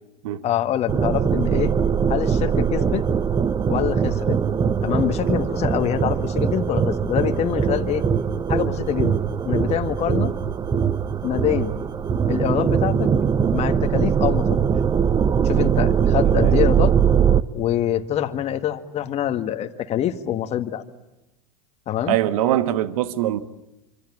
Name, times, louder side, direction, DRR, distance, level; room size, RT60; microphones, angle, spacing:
voice 1, 0.4-1.7 2.1-3.1 3.7-4.4 4.8-8.0 8.5-10.3 11.2-11.7 12.3-13.1 13.5-14.6 15.4-16.9 17.5-20.8 21.9-22.2, left 11 dB, 35° left, 1.8 m, -25 dB
sound 1, 0.9-17.4, right 7 dB, 20° right, 0.9 m, -21 dB
voice 2, 16.2-16.6 22.1-23.4, right 12 dB, 65° right, 1.6 m, -23 dB
26.5 x 25.5 x 8.6 m
hypercardioid pair, 95°, 19 cm